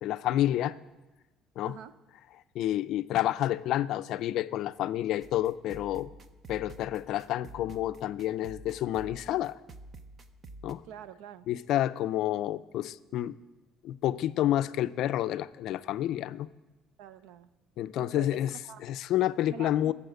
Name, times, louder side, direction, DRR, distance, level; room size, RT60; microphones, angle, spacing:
voice 1, 0.0-0.7 1.6-1.7 2.5-6.1 6.5-9.5 10.6-10.8 11.5-13.4 13.8-16.5 17.8-18.5 18.8-19.9, left 13 dB, 55° left, 13 dB, 0.4 m, -29 dB
sound 1, 5.2-10.7, right 2 dB, 25° right, 0.6 m, -49 dB
voice 2, 10.8-11.5 17.0-17.5 18.0-18.9 19.5-19.9, right 9 dB, 80° right, 14 dB, 0.6 m, -46 dB
15.0 x 7.1 x 8.0 m, 1.1 s
cardioid pair, 170°, 0 cm